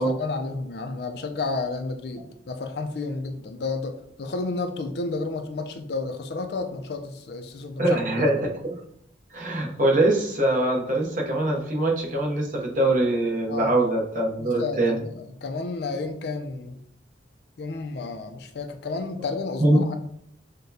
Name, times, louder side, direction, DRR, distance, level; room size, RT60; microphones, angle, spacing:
voice 1, 0.0-8.2 13.4-13.7 14.4-16.8 17.6-19.9, left 3 dB, 55° left, 6 dB, 0.4 m, -31 dB
voice 2, 7.8-8.7 9.3-15.0 19.6-19.8, right 1 dB, 45° right, 0 dB, 0.8 m, -23 dB
6.4 x 2.2 x 2.7 m, 0.71 s
head